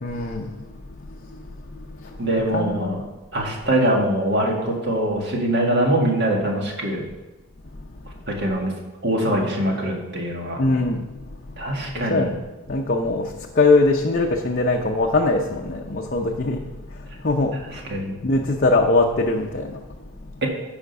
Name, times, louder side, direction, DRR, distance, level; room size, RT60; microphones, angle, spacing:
voice 1, 0.0-0.5 1.9-3.0 10.6-11.1 11.5-11.6 12.1-12.3 12.7-16.6 17.2-17.8 18.2-19.8, left 2 dB, 40° left, 1 dB, 0.6 m, -21 dB
voice 2, 2.2-3.0 3.3-7.0 8.3-8.7 9.0-10.6 11.6-12.3 17.7-18.2 20.4-20.5, right 1 dB, 50° right, 0 dB, 1.9 m, -23 dB
10.0 x 5.1 x 6.8 m, 1.1 s
head